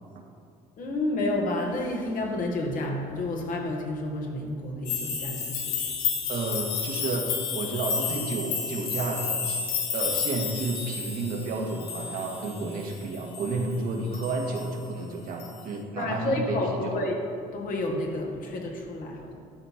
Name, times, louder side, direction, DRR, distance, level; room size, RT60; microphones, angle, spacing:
voice 1, 0.8-6.0 16.0-17.2 17.5-19.3, left 2 dB, 60° left, 1 dB, 1.8 m, -30 dB
sound 1, 4.9-13.8 14.1-14.7 15.4-15.5, left 6 dB, 85° left, 1.3 m, -31 dB
voice 2, 6.3-9.6 9.9-17.0, right 3 dB, 65° right, 1 dB, 1.6 m, -31 dB
12.0 x 4.5 x 5.8 m, 2.3 s
supercardioid pair, 90°, 16 cm